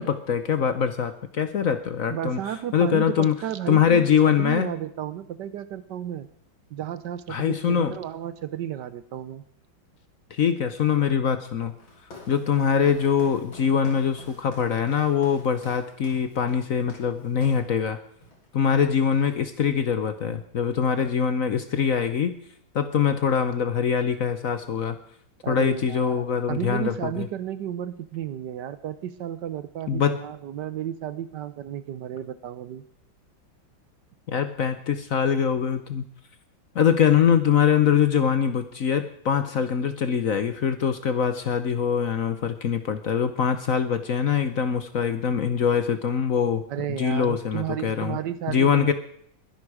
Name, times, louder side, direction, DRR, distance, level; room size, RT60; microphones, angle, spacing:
voice 1, 0.0-2.4 2.7-3.3 3.7-4.7 7.3-7.9 10.3-11.7 12.3-18.0 18.5-22.3 22.7-25.0 25.5-27.3 29.9-30.2 34.3-36.1 36.7-46.6 46.9-48.2 48.5-48.9, left 7 dB, 55° left, 10 dB, 1.1 m, -23 dB
voice 2, 2.1-4.1 4.4-6.3 6.7-9.4 25.4-32.8 46.7-48.9, right 10 dB, 70° right, 14 dB, 1.3 m, -33 dB
Walk footsteps, 11.8-17.7 18.2-18.5 18.7-19.6, left 2 dB, 85° left, 4.1 m, -48 dB
21.5 x 11.0 x 4.9 m, 0.66 s
omnidirectional pair, 2.1 m